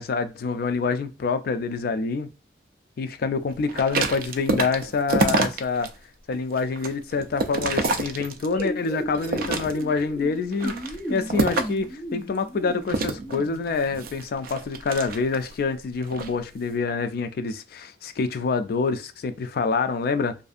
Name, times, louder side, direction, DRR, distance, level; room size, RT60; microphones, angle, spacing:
voice 1, 0.0-2.3 3.0-5.9 6.3-10.8 11.1-20.4, left 4 dB, 55° left, 0.3 m, -26 dB
sound 1, 3.7-5.9 6.3-8.7 9.1-10.0 10.5-11.9 12.9-15.5 16.0-16.3, right 3 dB, 55° right, 0.3 m, -27 dB
sound 2, 8.5-14.0, right 1 dB, ahead, 0.6 m, -35 dB
2.6 x 2.4 x 2.4 m
head